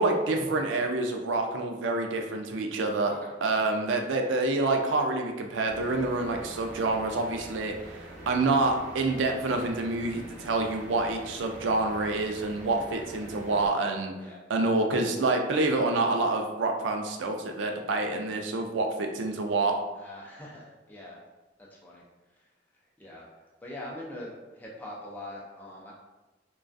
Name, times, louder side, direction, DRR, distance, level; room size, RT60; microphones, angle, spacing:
voice 1, 0.0-3.1 3.4-8.0 8.3-14.1 14.5-19.8, right 2 dB, 90° right, 3 dB, 0.4 m, -27 dB
sound 1, 5.7-13.7, right 1 dB, 70° right, 0.8 m, -45 dB
voice 2, 19.9-21.2 21.6-22.0 22.4-22.5 23.0-25.9, left 1 dB, 10° left, -5 dB, 0.4 m, -43 dB
2.3 x 2.2 x 2.4 m, 1.1 s
head